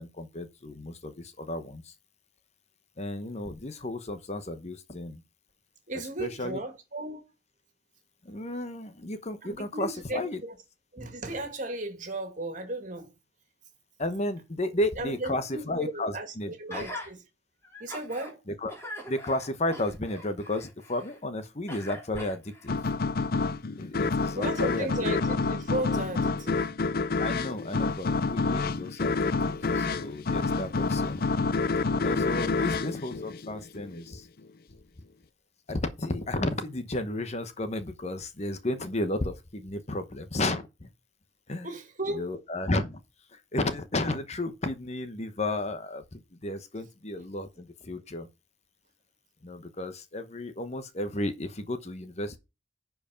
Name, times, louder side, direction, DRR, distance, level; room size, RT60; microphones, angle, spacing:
voice 1, 0.0-1.9 3.0-5.2 6.2-6.6 8.2-10.4 14.0-16.9 18.5-18.7 19.1-22.8 23.8-24.9 27.2-31.2 32.0-34.3 35.7-40.9 41.5-41.7 42.1-43.0 43.3-48.3 49.4-52.4, left 1 dB, 40° left, 1.0 m, -33 dB
voice 2, 5.9-7.2 9.4-10.6 10.9-13.1 15.0-17.2 17.8-18.4 24.3-26.7 41.6-42.3, right 2 dB, 45° right, 2.4 m, -35 dB
Gasp, 16.7-17.1 17.6-18.3 18.7-21.2 21.7-22.8 23.4-23.5, equal, 15° left, 3.0 m, -42 dB
sound 1, 22.7-33.9, left 4 dB, 55° left, 0.6 m, -28 dB
10.5 x 4.9 x 5.1 m
head